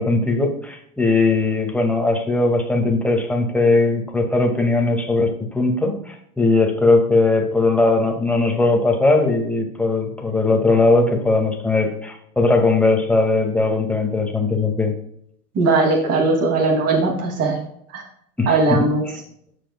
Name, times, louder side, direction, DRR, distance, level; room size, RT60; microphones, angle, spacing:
voice 1, 0.0-14.9 18.4-18.9, left 3 dB, 5° left, 1 dB, 1.9 m, -19 dB
voice 2, 15.5-17.6 17.9-18.0 18.5-19.1, right 3 dB, 30° right, 0 dB, 2.4 m, -19 dB
14.5 x 5.1 x 2.2 m, 0.69 s
hypercardioid pair, 100°, 45 cm